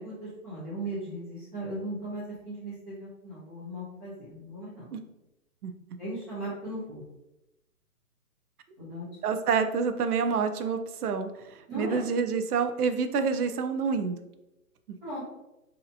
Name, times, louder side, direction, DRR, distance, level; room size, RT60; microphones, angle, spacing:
voice 1, 0.0-4.9 6.0-7.0 8.8-9.1 11.7-12.0 15.0-15.2, right 1 dB, 15° right, -13 dB, 0.7 m, -37 dB
voice 2, 9.2-14.2, right 5 dB, 80° right, 8 dB, 0.5 m, -28 dB
3.2 x 2.8 x 2.6 m, 0.97 s
hypercardioid pair, 160°, 45 cm